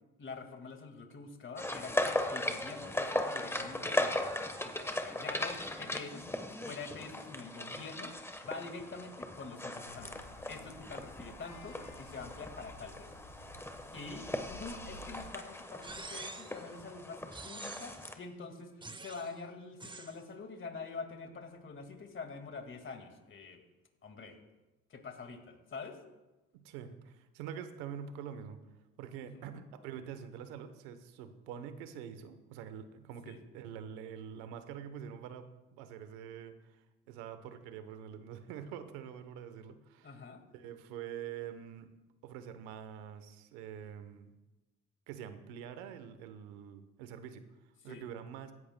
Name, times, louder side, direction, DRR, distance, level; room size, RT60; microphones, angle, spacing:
voice 1, 0.2-6.3 6.6-10.1 10.5-13.2 13.9-23.6 24.0-24.4 24.9-26.0 29.2-29.5 33.3-33.4 40.0-40.4 47.9-48.1, left 4 dB, 40° left, 5 dB, 1.9 m, -46 dB
sound 1, 1.6-18.1, left 1 dB, 10° left, 1.1 m, -38 dB
sound 2, 9.8-15.3, left 1 dB, 75° left, 2.6 m, -53 dB
sound 3, 15.8-16.6 17.3-18.1 18.8-19.3 19.8-20.2, right 3 dB, 15° right, 0.8 m, -46 dB
voice 2, 26.5-28.6 29.0-40.2 40.5-41.9 42.2-44.3 45.1-47.4 47.8-48.5, right 8 dB, 90° right, 10 dB, 0.9 m, -45 dB
16.0 x 11.0 x 2.2 m, 1.0 s
supercardioid pair, 70°, 31 cm